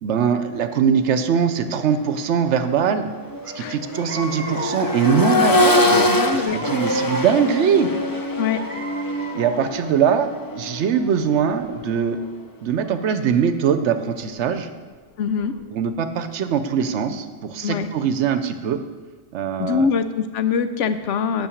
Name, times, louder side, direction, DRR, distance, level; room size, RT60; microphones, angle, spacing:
voice 1, 0.0-3.1 3.6-7.9 9.3-10.3 10.5-12.2 12.6-14.7 15.7-18.8 19.3-19.9, right 7 dB, 70° right, 10 dB, 0.9 m, -21 dB
Accelerating revving vroom, 1.9-2.1 2.5-12.4 14.1-14.2, left 1 dB, 25° left, 0.5 m, -24 dB
sound 1, 3.4-3.6 3.9-5.3 5.8-7.6 8.1-9.9, right 3 dB, 30° right, 1.0 m, -35 dB
voice 2, 5.8-6.6 8.4-8.6 15.2-15.6 17.6-17.9 19.6-21.5, left 6 dB, 75° left, 10 dB, 1.0 m, -23 dB
8.6 x 5.9 x 7.0 m, 1.4 s
omnidirectional pair, 1.2 m